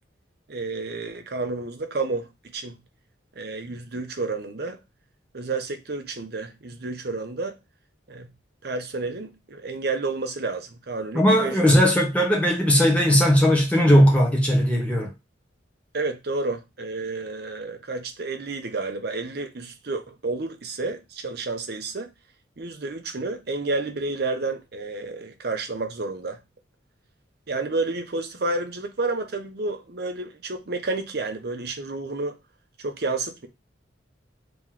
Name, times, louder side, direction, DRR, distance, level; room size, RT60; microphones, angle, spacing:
voice 1, 0.5-2.8 3.4-4.8 5.3-7.6 8.1-8.3 8.6-11.7 15.9-22.1 22.6-26.4 27.5-32.4 32.8-33.5, right 3 dB, 55° right, 0.7 m, -30 dB
voice 2, 11.1-15.1, equal, 5° left, 1.0 m, -18 dB
3.0 x 3.0 x 3.7 m
head